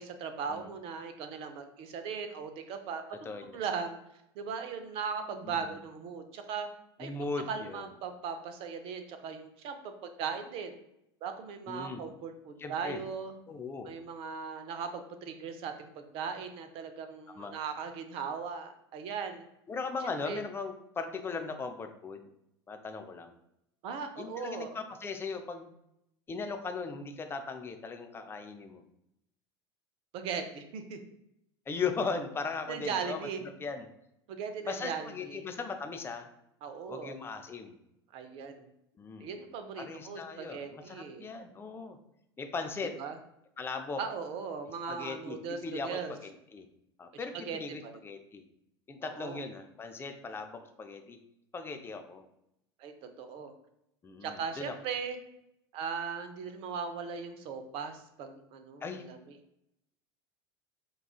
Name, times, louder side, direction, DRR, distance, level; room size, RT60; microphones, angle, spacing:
voice 1, 0.0-3.0 3.4-4.0 4.4-6.7 7.0-7.1 7.5-10.8 11.2-13.3 13.8-19.4 20.2-20.4 23.8-24.8 30.1-31.0 32.7-33.4 34.3-35.4 36.6-37.2 38.1-38.7 39.2-41.3 43.0-43.2 44.0-46.2 47.5-47.9 49.0-49.4 52.8-53.5 54.2-55.2 55.7-59.2, right 6 dB, 40° right, 7 dB, 0.5 m, -38 dB
voice 2, 7.0-7.9 11.7-12.0 12.6-13.0 13.5-14.0 17.4-17.5 19.7-22.3 22.7-23.3 24.2-25.7 26.3-28.8 31.7-33.9 34.7-36.3 36.9-37.7 39.0-39.3 39.8-42.0 42.4-42.9 43.6-44.0 44.9-46.7 47.0-48.4 48.9-51.2 51.5-52.2 54.0-54.7 58.8-59.0, left 4 dB, 15° left, 5 dB, 0.4 m, -38 dB
4.7 x 2.3 x 2.3 m, 0.80 s
figure-of-eight pair, 75°, 14 cm